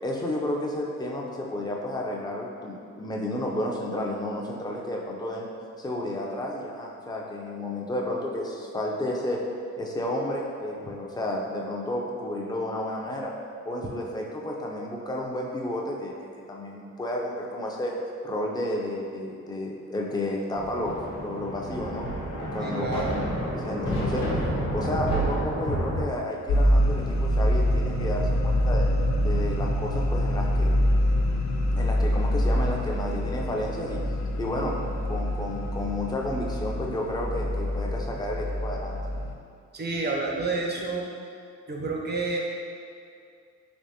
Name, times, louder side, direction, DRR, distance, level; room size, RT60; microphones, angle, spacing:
voice 1, 0.0-5.5 5.8-9.4 9.8-13.3 13.7-17.9 18.2-22.1 22.5-23.2 23.6-24.2 24.7-28.9 29.2-30.7 31.8-34.0 34.4-34.8 35.0-39.0, left 1 dB, 15° left, -1 dB, 0.4 m, -31 dB
Thunder, 20.6-26.1, right 1 dB, 90° left, 0.9 m, -29 dB
voice 2, 22.6-23.2 39.7-41.1 41.7-42.4, right 3 dB, 35° right, -1 dB, 0.6 m, -29 dB
sound 1, 26.5-39.3, equal, 65° left, 0.5 m, -25 dB
3.5 x 2.9 x 2.7 m, 2.3 s
cardioid pair, 90°, 30 cm